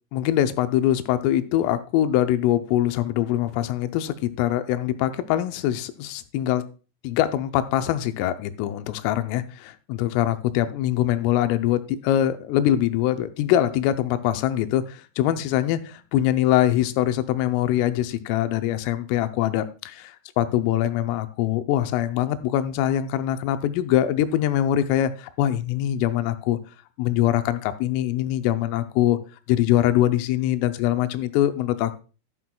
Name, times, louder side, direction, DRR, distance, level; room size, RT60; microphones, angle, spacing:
voice 1, 0.1-6.6 7.0-19.7 20.0-20.1 20.4-26.6 27.0-29.2 29.5-32.0, left 12 dB, 85° left, 10 dB, 3.2 m, -23 dB
11.5 x 11.0 x 2.2 m, 0.34 s
omnidirectional pair, 6.0 m